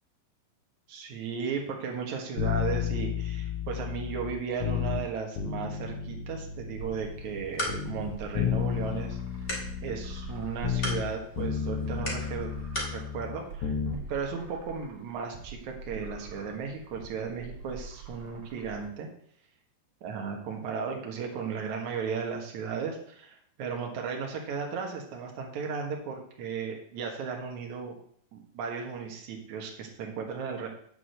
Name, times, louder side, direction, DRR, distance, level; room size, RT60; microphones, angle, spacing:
voice 1, 0.9-9.2 9.4-9.5 9.8-12.5 12.9-19.1 20.0-27.9 28.3-30.7, right 6 dB, 70° right, 1 dB, 1.8 m, -35 dB
sound 1, 2.4-5.0 5.4-7.4 7.7-11.1 11.4-14.0 14.3-14.4, left 8 dB, 85° left, 1.7 m, -32 dB
sound 2, 6.8-18.8, right 3 dB, 50° right, 3.2 m, -45 dB
sound 3, 7.1-13.0, left 1 dB, 25° left, 1.7 m, -39 dB
9.4 x 4.9 x 7.9 m, 0.63 s
omnidirectional pair, 5.7 m